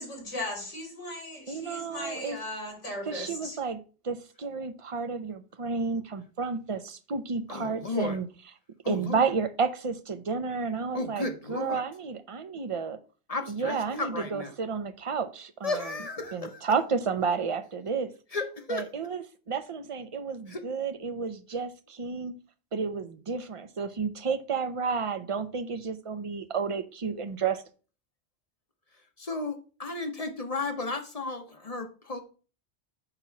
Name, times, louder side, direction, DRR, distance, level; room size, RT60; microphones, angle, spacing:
voice 1, 0.0-3.6, left 1 dB, 85° left, -2 dB, 3.8 m, -37 dB
voice 2, 1.5-2.4 3.0-8.3 8.9-13.0 13.5-16.1 16.3-18.1 18.7-22.4 22.7-27.6, right 5 dB, 35° right, 11 dB, 0.5 m, -31 dB
voice 3, 7.5-8.2 8.8-9.2 10.9-11.8 13.3-14.5 15.6-16.6 18.3-18.8 20.5-20.6 29.2-32.2, left 3 dB, 35° left, 7 dB, 0.8 m, -34 dB
8.9 x 3.0 x 5.7 m, 0.37 s
omnidirectional pair, 1.2 m